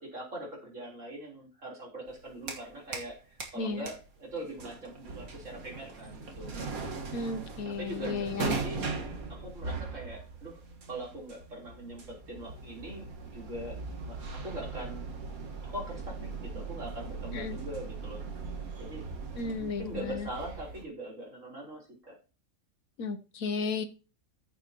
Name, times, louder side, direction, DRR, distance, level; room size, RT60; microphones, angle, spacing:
voice 1, 0.0-6.5 7.8-10.6 10.9-13.1 13.3-13.8 14.1-15.1 15.6-18.3 18.8-19.1 19.6-22.2, right 1 dB, 60° right, -2 dB, 4.1 m, -42 dB
sound 1, 2.1-3.1 3.4-20.8, right 4 dB, 75° right, 2.0 m, -39 dB
voice 2, 3.6-3.9 7.1-8.6 17.3-17.6 19.4-20.3 23.0-23.8, left 4 dB, 70° left, 10 dB, 1.4 m, -34 dB
14.5 x 7.1 x 2.9 m, 0.32 s
omnidirectional pair, 1.5 m